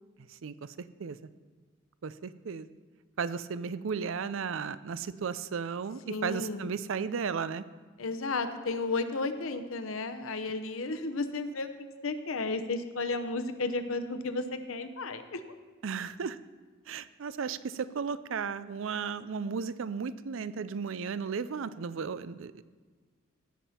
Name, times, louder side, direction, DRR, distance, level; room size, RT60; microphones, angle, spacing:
voice 1, 0.3-1.2 2.0-2.7 3.2-7.6 15.8-16.4 16.9-22.6, right 6 dB, 70° right, 15 dB, 0.5 m, -35 dB
voice 2, 6.1-6.7 8.0-11.7 12.0-15.4, left 3 dB, 80° left, 8 dB, 0.9 m, -33 dB
17.0 x 7.4 x 4.3 m, 1.5 s
head